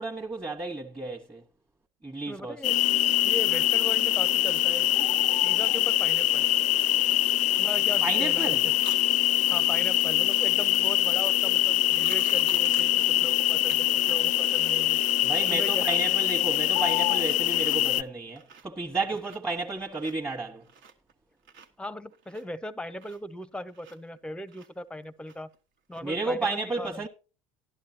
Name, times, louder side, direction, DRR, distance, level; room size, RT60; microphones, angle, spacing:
voice 1, 0.0-1.4 2.0-2.6 8.0-8.6 15.2-20.6 26.0-27.1, right 3 dB, 15° right, 1.4 m, -32 dB
voice 2, 2.3-2.8 3.2-5.1 5.4-6.4 7.5-8.7 9.2-15.0 15.5-16.0 21.8-25.5 25.9-27.1, left 1 dB, 5° left, 0.8 m, -39 dB
sound 1, 2.6-18.0, left 14 dB, 50° left, 0.5 m, -24 dB
sound 2, 8.8-9.0 11.7-13.0 13.7-13.8 14.2-14.3 14.7-15.2 15.5-16.1 16.6-16.9 17.3-17.8 18.2-18.8 19.1-21.1 21.4-24.2 24.5-25.6 25.9-26.0, right 6 dB, 70° right, 1.6 m, -47 dB
13.0 x 11.0 x 2.8 m
hypercardioid pair, 80°, 16 cm